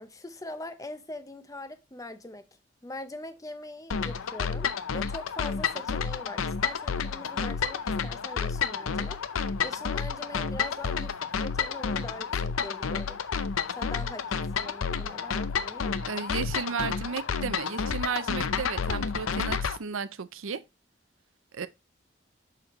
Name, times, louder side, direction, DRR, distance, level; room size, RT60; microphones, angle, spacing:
voice 1, 0.0-2.5 2.8-9.2 9.6-13.2 13.7-16.0, left 2 dB, 15° left, 0.6 m, -42 dB
sound 1, 3.9-19.8, left 6 dB, 90° left, 0.6 m, -30 dB
voice 2, 16.0-20.6 21.5-21.7, right 6 dB, 80° right, 0.6 m, -34 dB
6.8 x 5.9 x 3.0 m
head